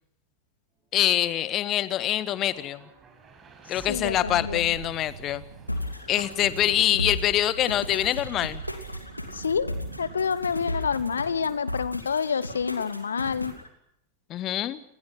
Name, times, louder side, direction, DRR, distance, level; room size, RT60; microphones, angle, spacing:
sound 1, 0.8-12.8, right 6 dB, 25° right, 6.7 m, -52 dB
voice 1, 0.9-2.8 3.7-5.4 6.1-8.6 14.3-14.8, left 12 dB, 35° left, 15 dB, 1.5 m, -25 dB
voice 2, 3.9-4.7 9.3-13.6, left 6 dB, 70° left, 18 dB, 1.1 m, -28 dB
sound 2, 4.2-11.6, right 7 dB, 65° right, 2.3 m, -42 dB
sound 3, 5.7-13.7, left 1 dB, 85° left, 3.0 m, -35 dB
29.0 x 21.0 x 6.1 m, 0.72 s
figure-of-eight pair, 90°, 0 cm